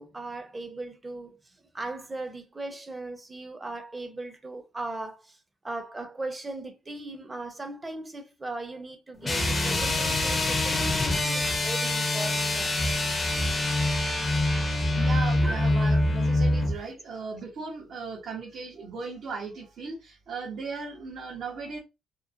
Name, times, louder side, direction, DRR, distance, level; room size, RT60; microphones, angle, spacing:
voice 1, 0.0-5.4 5.6-13.0 15.4-15.5, right 2 dB, 20° right, 0.7 m, -38 dB
sound 1, 9.2-16.8, left 2 dB, 30° left, 0.6 m, -25 dB
voice 2, 14.7-21.8, right 4 dB, 65° right, 0.9 m, -37 dB
3.0 x 2.0 x 2.5 m
cardioid pair, 90°, 0 cm